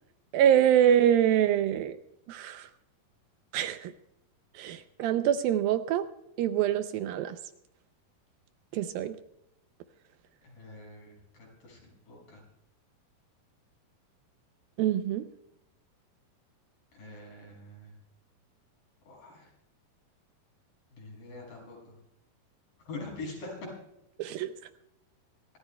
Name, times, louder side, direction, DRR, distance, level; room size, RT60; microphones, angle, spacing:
voice 1, 0.3-2.0 2.3-2.7 3.5-3.9 4.6-6.1 6.4-7.4 8.7-9.2 14.8-15.2 24.2-24.5, right 10 dB, 80° right, 10 dB, 2.2 m, -25 dB
voice 2, 10.4-12.4 16.9-17.9 19.0-19.5 20.9-21.9 22.9-23.6, left 2 dB, 65° left, -2 dB, 7.7 m, -44 dB
25.5 x 14.0 x 2.2 m, 0.85 s
omnidirectional pair, 4.5 m